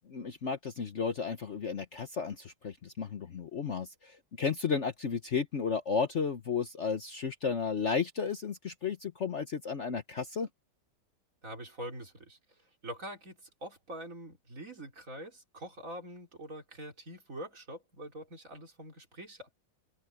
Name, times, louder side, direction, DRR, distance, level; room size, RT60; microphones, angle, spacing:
voice 1, 0.1-10.5, left 5 dB, 50° left, 1.1 m, -33 dB
voice 2, 11.4-12.4 12.8-19.5, right 1 dB, 45° right, 4.4 m, -44 dB
omnidirectional pair, 1.9 m